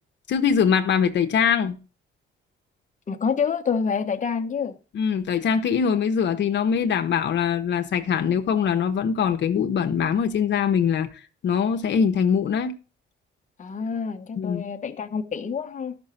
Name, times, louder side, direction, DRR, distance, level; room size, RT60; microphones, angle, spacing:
voice 1, 0.3-1.8 4.9-12.7 14.4-14.6, left 7 dB, 65° left, 1.0 m, -22 dB
voice 2, 3.1-4.7 13.6-16.0, left 6 dB, 40° left, 1.1 m, -27 dB
12.0 x 6.1 x 5.7 m
cardioid pair, 90°, 20 cm